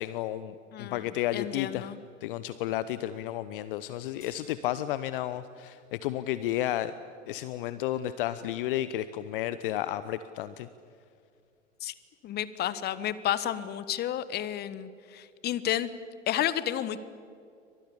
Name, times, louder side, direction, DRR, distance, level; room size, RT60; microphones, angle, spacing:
voice 1, 0.0-1.9 2.2-6.9 7.3-10.7, left 13 dB, 45° left, 14 dB, 1.0 m, -32 dB
voice 2, 0.7-1.0 1.3-2.0 11.8-11.9 12.2-15.9 16.3-17.0, left 11 dB, 25° left, 15 dB, 1.3 m, -31 dB
sound 1, 4.2-6.8, left 2 dB, 80° left, 7.9 m, -60 dB
29.5 x 25.0 x 7.1 m, 2.4 s
figure-of-eight pair, 95°, 38 cm